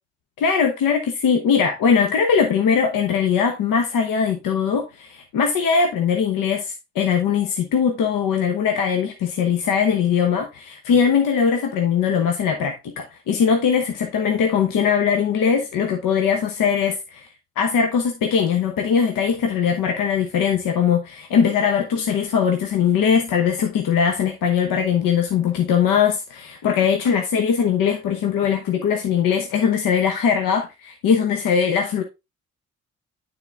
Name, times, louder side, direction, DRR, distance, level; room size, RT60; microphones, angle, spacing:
voice 1, 0.4-17.3 17.6-32.0, left 7 dB, 70° left, 1.0 m, -20 dB
9.2 x 3.9 x 3.4 m
hypercardioid pair, 45°, 34 cm